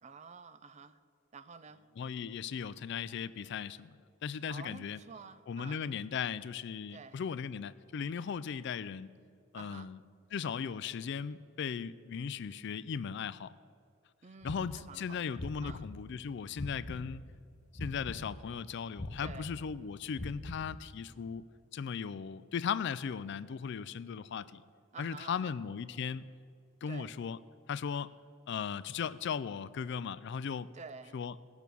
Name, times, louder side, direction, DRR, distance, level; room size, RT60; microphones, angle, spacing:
voice 1, 0.0-1.0 1.3-1.8 4.5-5.9 6.9-7.2 9.5-9.9 14.2-15.9 19.2-19.5 24.9-25.5 26.9-27.1 30.7-31.2, right 5 dB, 35° right, 13 dB, 0.4 m, -50 dB
voice 2, 2.0-5.0 5.5-9.1 9.5-10.0 10.3-13.6 14.4-17.2 17.8-21.5 21.7-24.6 25.0-26.3 26.8-27.4 27.7-28.1 28.5-30.7 31.1-31.3, left 6 dB, 60° left, 16 dB, 0.4 m, -37 dB
sound 1, 14.4-17.4 17.8-21.1, left 2 dB, 35° left, 0.7 m, -43 dB
17.5 x 6.1 x 6.9 m, 2.2 s
head